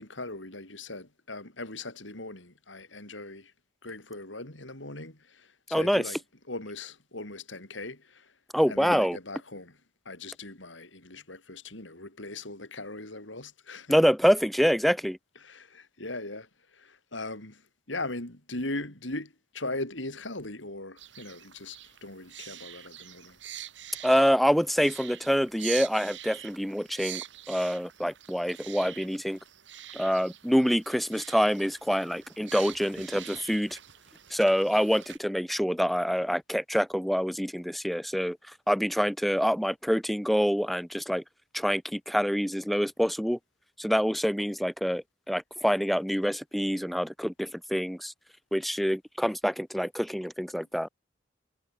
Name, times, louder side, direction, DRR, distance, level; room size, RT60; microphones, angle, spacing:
voice 1, 0.0-3.5 3.8-6.2 6.5-8.3 8.7-9.8 10.1-14.0 15.4-17.6 17.9-23.4, left 2 dB, 75° left, 5.6 m, -39 dB
voice 2, 5.7-6.2 8.5-9.2 13.9-15.2 24.0-29.4 29.9-33.8 34.3-38.4 38.7-41.2 41.5-43.4 43.8-48.1 48.5-50.9, equal, ahead, 1.2 m, -26 dB
sound 1, 21.0-35.2, right 11 dB, 70° right, 6.1 m, -45 dB
head